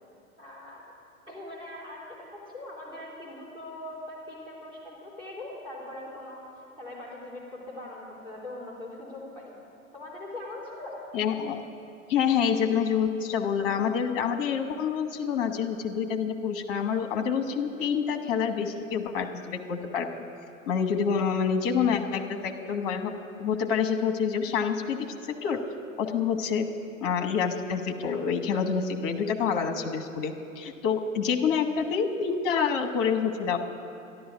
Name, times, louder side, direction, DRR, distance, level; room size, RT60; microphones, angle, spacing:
voice 1, 0.4-0.8 1.3-2.3 2.5-6.4 6.8-9.5 9.9-11.0, left 1 dB, 10° right, -6 dB, 3.8 m, -41 dB
voice 2, 11.1-11.6 12.1-20.1 20.7-23.1 23.4-25.7 26.0-26.7 27.0-33.6, left 6 dB, 40° left, 7 dB, 1.2 m, -27 dB
13.0 x 11.0 x 6.2 m, 2.8 s
figure-of-eight pair, 95°, 41 cm